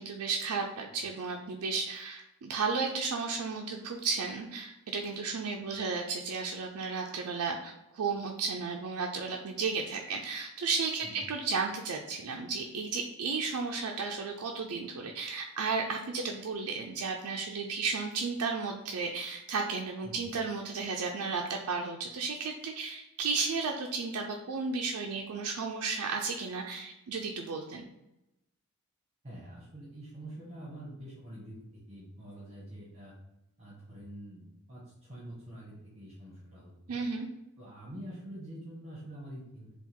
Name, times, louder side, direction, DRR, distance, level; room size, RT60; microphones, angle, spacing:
voice 1, 0.0-27.9 36.9-37.3, right 4 dB, 85° right, 1 dB, 0.4 m, -33 dB
voice 2, 20.0-20.3 29.2-33.1 33.6-37.0 37.6-39.7, right 1 dB, 30° right, -7 dB, 1.2 m, -46 dB
3.6 x 2.3 x 4.3 m, 0.89 s
head